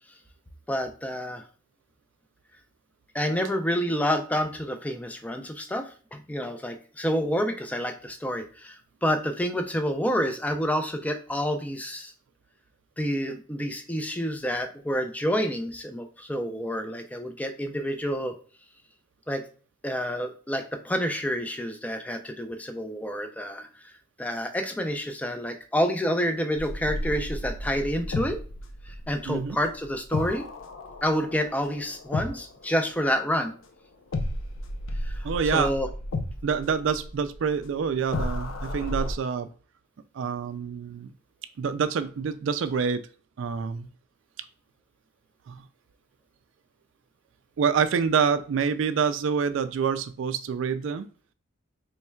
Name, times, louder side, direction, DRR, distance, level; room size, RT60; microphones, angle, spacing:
voice 1, 0.7-1.4 3.1-12.1 13.0-18.3 19.3-19.4 19.8-23.9 24.2-28.4 28.9-30.4 31.0-33.5 35.0-35.9, equal, 10° left, 6 dB, 0.4 m, -28 dB
sound 1, 26.6-33.6 34.1-39.1, left 1 dB, 85° left, 0.6 m, -34 dB
voice 2, 29.3-29.6 35.2-35.7 36.4-39.5 40.1-41.1 41.6-43.0 43.4-43.9 45.5-45.6 47.6-51.1, right 6 dB, 70° right, 11 dB, 0.3 m, -27 dB
4.3 x 3.1 x 2.2 m, 0.39 s
head